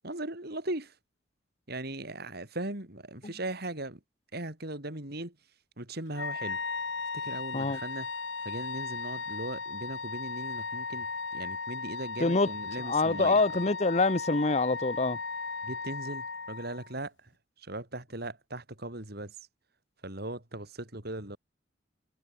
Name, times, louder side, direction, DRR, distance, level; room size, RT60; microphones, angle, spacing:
voice 1, 0.0-0.9 1.7-4.0 4.3-5.3 5.8-6.6 7.1-8.1 8.4-13.4 15.6-17.3 17.6-19.3 20.0-21.4, right 1 dB, 55° right, 4.8 m, -38 dB
Wind instrument woodwind instrument, 6.1-16.9, left 4 dB, 80° left, 6.0 m, -36 dB
voice 2, 12.9-15.2, left 3 dB, 35° left, 1.0 m, -25 dB
head